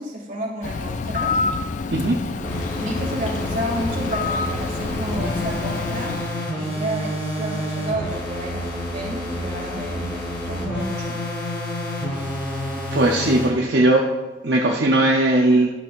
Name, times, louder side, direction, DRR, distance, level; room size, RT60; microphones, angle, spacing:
voice 1, 0.0-1.3 2.8-11.2, equal, 50° right, -3 dB, 2.4 m, -31 dB
Bird, 0.6-6.5, left 4 dB, 45° left, 0.4 m, -28 dB
sound 1, 2.4-13.5, left 1 dB, 65° left, 2.6 m, -29 dB
voice 2, 12.9-14.1 14.4-15.7, right 1 dB, 70° right, 0 dB, 0.7 m, -18 dB
12.0 x 6.3 x 2.5 m, 1.2 s
head